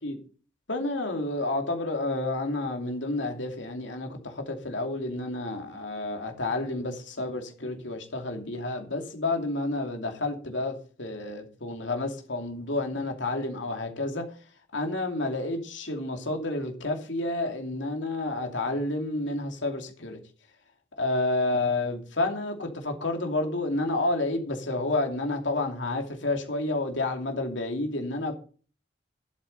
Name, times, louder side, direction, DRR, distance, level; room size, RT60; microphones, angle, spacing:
voice 1, 0.7-14.3 14.7-20.2 21.0-28.3, left 2 dB, 85° left, 2.8 m, -30 dB
11.5 x 8.2 x 5.5 m
head